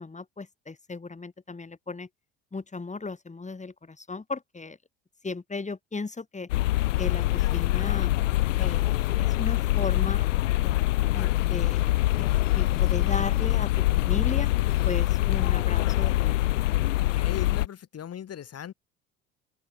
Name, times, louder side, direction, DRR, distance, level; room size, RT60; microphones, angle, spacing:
voice 1, 0.0-2.1 2.5-4.8 5.2-6.5 7.0-8.1 8.6-10.3 10.6-12.3 12.5-14.5 14.8-16.5, left 3 dB, 20° left, 5.8 m, -36 dB
sound 1, 6.5-17.7, left 16 dB, 75° left, 1.6 m, -24 dB
voice 2, 16.9-18.7, left 9 dB, 40° left, 3.3 m, -39 dB
figure-of-eight pair, 60°, 38 cm